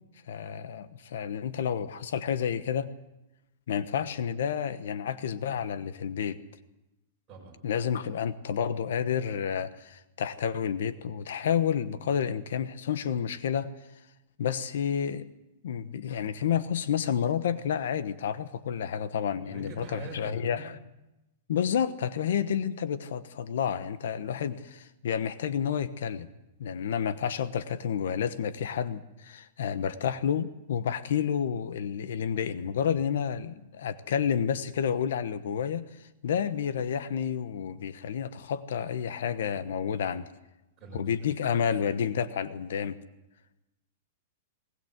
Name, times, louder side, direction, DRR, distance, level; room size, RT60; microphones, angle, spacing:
voice 1, 0.3-2.9 3.7-6.4 7.6-13.7 14.4-15.2 15.6-20.8 21.5-26.3 26.6-40.3 40.9-43.0, left 8 dB, 70° left, 13 dB, 1.1 m, -30 dB
voice 2, 7.3-7.6 19.5-20.7 40.8-41.5, right 2 dB, 15° right, -3 dB, 7.3 m, -44 dB
20.0 x 19.5 x 8.0 m, 0.96 s
supercardioid pair, 175°, 0 cm